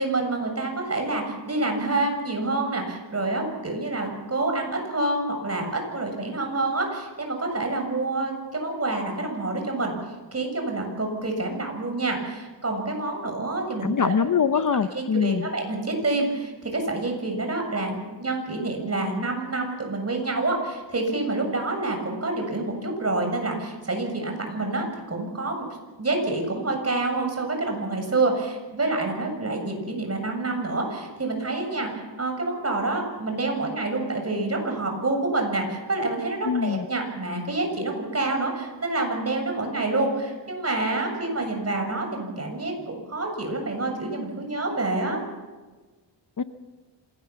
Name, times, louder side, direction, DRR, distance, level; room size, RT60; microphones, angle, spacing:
voice 1, 0.0-9.9 10.3-14.1 14.9-25.6 26.0-45.2, right 2 dB, 35° right, 3 dB, 7.0 m, -27 dB
voice 2, 13.8-15.5 36.4-36.8 46.4-46.5, left 6 dB, 45° left, 10 dB, 0.9 m, -23 dB
26.5 x 18.5 x 7.1 m, 1.3 s
wide cardioid pair, 100°, 43 cm